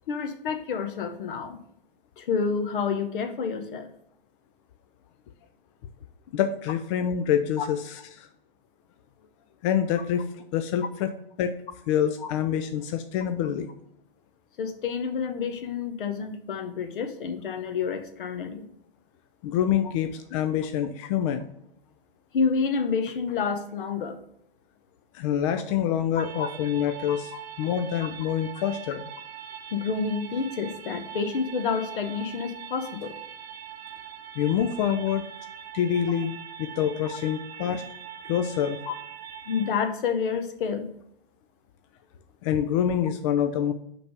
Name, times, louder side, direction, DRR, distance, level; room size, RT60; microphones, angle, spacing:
voice 1, 0.1-1.6 2.2-3.9 7.6-7.7 12.2-12.3 14.6-18.6 22.3-24.2 26.2-26.5 27.1-27.4 29.7-33.2 38.9-39.0 39.5-40.9, left 5 dB, 60° left, 9 dB, 0.9 m, -29 dB
voice 2, 6.3-7.8 8.1-8.3 9.6-11.1 11.4-11.5 11.9-13.7 19.4-21.5 25.1-27.3 27.6-29.1 34.4-35.3 35.7-37.8 38.2-38.8 42.4-43.7, left 9 dB, 35° left, 7 dB, 0.4 m, -26 dB
sound 1, 26.2-39.7, right 9 dB, 25° right, 0.8 m, -42 dB
5.8 x 3.4 x 5.0 m, 0.74 s
hypercardioid pair, 115°, 29 cm